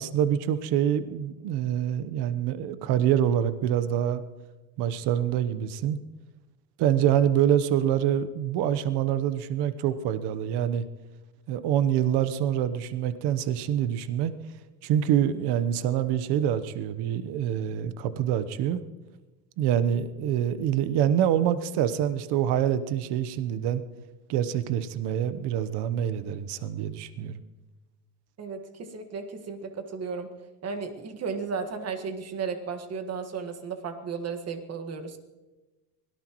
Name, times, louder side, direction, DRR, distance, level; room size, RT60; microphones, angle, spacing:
voice 1, 0.0-4.2 4.8-6.0 6.8-10.8 11.5-14.3 14.8-18.8 19.6-23.8 24.3-27.4, right 10 dB, 60° right, 13 dB, 1.1 m, -26 dB
voice 2, 28.4-30.3 30.6-35.2, right 5 dB, 35° right, 7 dB, 1.7 m, -34 dB
24.0 x 18.0 x 3.1 m, 1.1 s
cardioid pair, 125°, 45 cm